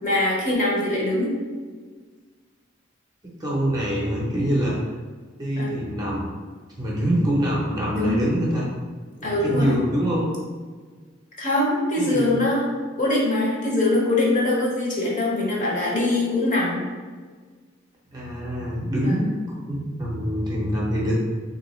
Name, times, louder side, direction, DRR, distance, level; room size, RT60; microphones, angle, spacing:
voice 1, 0.0-1.3 5.6-5.7 7.9-8.2 9.2-9.8 11.4-12.7 13.0-16.8 19.0-19.2, left 2 dB, 40° left, -4 dB, 0.9 m, -23 dB
voice 2, 3.4-4.8 5.4-6.3 6.8-8.7 9.2-10.3 12.0-12.4 18.1-21.1, equal, 20° right, -5 dB, 0.6 m, -25 dB
3.5 x 2.6 x 3.0 m, 1.5 s
head